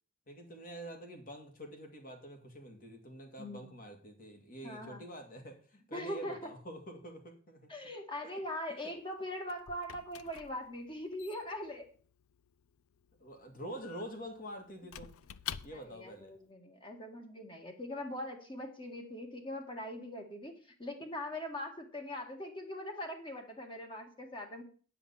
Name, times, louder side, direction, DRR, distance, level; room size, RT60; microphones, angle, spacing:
voice 1, 0.3-7.7 8.7-9.0 13.2-15.2 15.6-16.3, right 1 dB, 45° left, 4 dB, 2.3 m, -47 dB
voice 2, 4.6-5.0 5.9-6.5 7.7-11.9 15.7-24.6, left 1 dB, 25° left, 3 dB, 1.9 m, -41 dB
Squeak / Wood, 9.0-16.1, left 10 dB, 90° left, 0.5 m, -49 dB
9.7 x 5.8 x 7.1 m, 0.42 s
head